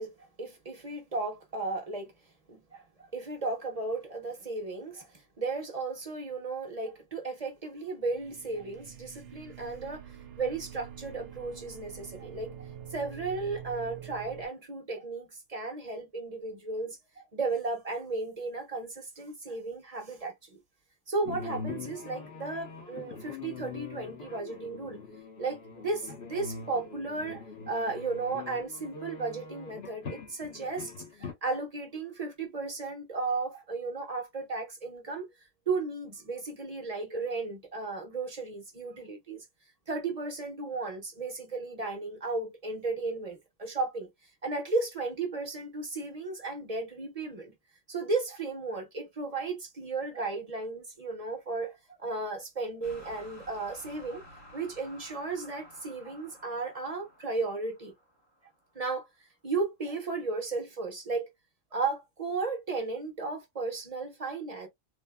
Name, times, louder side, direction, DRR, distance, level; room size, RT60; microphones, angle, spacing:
voice 1, 0.0-2.1 2.5-10.1 10.4-20.6 21.1-25.0 25.4-30.9 31.2-35.3 35.7-39.4 39.9-44.1 44.4-47.5 47.9-54.2 54.5-57.9 58.7-59.1 59.4-61.3 61.7-64.7, right 3 dB, 35° right, 0.8 m, -35 dB
sound 1, 8.0-14.5, right 9 dB, 75° right, 0.9 m, -46 dB
sound 2, 21.3-31.3, left 5 dB, 55° left, 1.0 m, -43 dB
sound 3, 52.8-58.9, equal, 80° left, 2.0 m, -53 dB
3.5 x 2.1 x 2.2 m
omnidirectional pair, 1.3 m